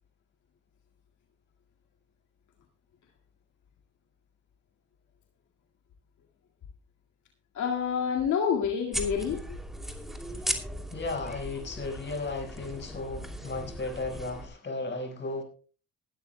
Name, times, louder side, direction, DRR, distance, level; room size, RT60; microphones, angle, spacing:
voice 1, 7.5-9.6, left 7 dB, 75° left, 2.0 m, -28 dB
sound 1, 8.9-14.5, equal, ahead, 2.7 m, -37 dB
voice 2, 10.9-15.4, left 3 dB, 35° left, 5.0 m, -35 dB
19.5 x 12.5 x 2.2 m
cardioid pair, 90°, 30 cm